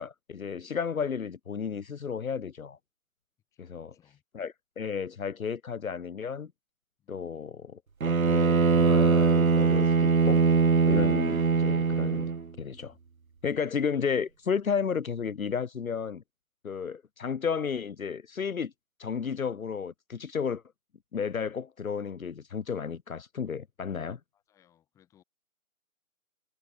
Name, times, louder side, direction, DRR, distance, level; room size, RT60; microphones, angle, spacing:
voice 1, 0.0-2.8 3.6-3.9 4.3-6.5 7.1-7.8 8.2-10.4 10.8-12.3 12.6-13.0 13.4-16.2 16.6-18.7 19.0-20.6 21.1-24.2, left 6 dB, 75° left, 0.7 m, -33 dB
voice 2, 3.5-4.2 7.0-7.8 24.3-25.2, left 11 dB, 5° left, 4.9 m, -66 dB
Bowed string instrument, 8.0-12.5, right 5 dB, 75° right, 1.0 m, -22 dB
figure-of-eight pair, 155°, 42 cm